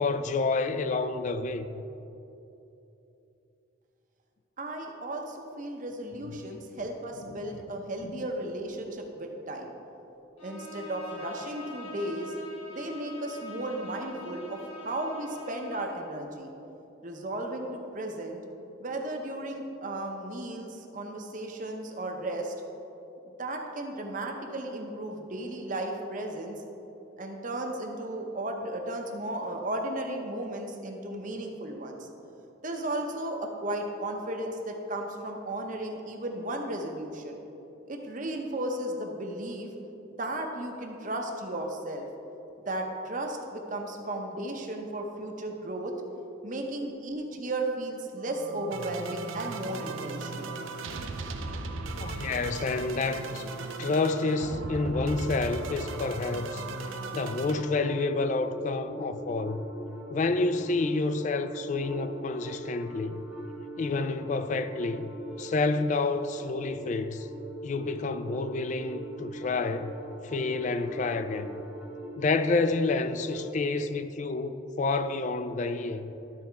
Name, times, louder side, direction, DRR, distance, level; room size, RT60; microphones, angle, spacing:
voice 1, 0.0-1.8 6.7-6.8 7.2-7.7 8.0-8.3 52.0-53.5 53.8-56.7 57.1-59.6 60.1-63.2 63.8-65.1 65.4-67.3 67.6-69.9 70.2-71.6 72.2-76.1, left 3 dB, 40° left, 0.3 m, -29 dB
voice 2, 4.6-9.7 10.4-12.3 12.7-16.5 17.0-18.4 18.8-22.5 23.4-26.6 27.2-32.1 32.6-37.4 37.9-39.7 40.1-42.1 42.7-45.9 46.4-50.5, right 1 dB, 40° right, 0.8 m, -35 dB
Bowed string instrument, 10.4-16.1, left 2 dB, 85° left, 1.5 m, -44 dB
sound 1, 48.3-57.6, right 3 dB, 85° right, 0.6 m, -37 dB
sound 2, 57.6-73.6, right 1 dB, ahead, 0.9 m, -42 dB
12.5 x 4.2 x 4.6 m
head